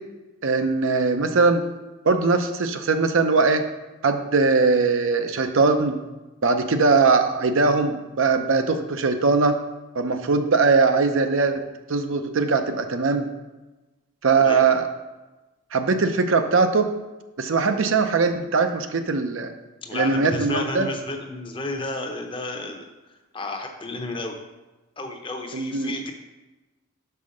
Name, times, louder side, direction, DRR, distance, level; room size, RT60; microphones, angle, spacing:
voice 1, 0.4-1.6 2.1-3.6 4.0-6.0 6.4-9.6 9.9-11.5 11.9-13.3 14.2-14.9 15.7-16.9 17.4-19.5 19.9-20.9 25.5-25.9, right 4 dB, 65° right, 7 dB, 0.6 m, -20 dB
voice 2, 19.8-22.8 23.3-24.4 25.0-26.1, left 2 dB, 25° left, 3 dB, 0.7 m, -32 dB
5.6 x 4.6 x 6.4 m, 1.1 s
head